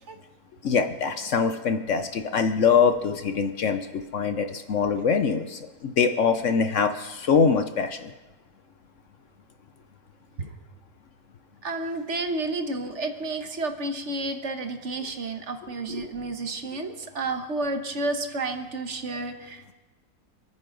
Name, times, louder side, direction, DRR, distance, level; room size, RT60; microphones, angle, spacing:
voice 1, 0.6-8.1 15.9-16.1 16.7-16.8, left 6 dB, 60° left, 8 dB, 0.8 m, -24 dB
voice 2, 11.6-19.7, right 2 dB, 45° right, 6 dB, 1.3 m, -31 dB
27.5 x 9.6 x 3.8 m, 1.2 s
omnidirectional pair, 1.9 m